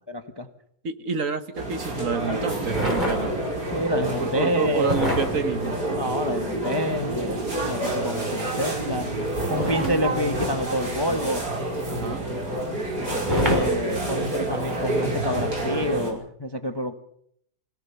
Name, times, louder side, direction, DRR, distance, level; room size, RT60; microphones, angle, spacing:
voice 1, 0.1-0.5 3.7-5.0 6.0-11.4 13.3-16.9, equal, 15° left, 6 dB, 1.1 m, -28 dB
voice 2, 0.8-3.3 4.2-5.8 11.9-12.2, right 5 dB, 55° right, 10 dB, 1.6 m, -28 dB
sound 1, 1.5-16.1, right 1 dB, 75° right, 6.1 m, -28 dB
sound 2, 2.7-3.6 4.8-7.2 9.5-11.5 13.2-14.4 15.3-15.5, right 1 dB, 25° right, 5.3 m, -29 dB
25.0 x 17.0 x 6.8 m, 0.70 s
omnidirectional pair, 1.8 m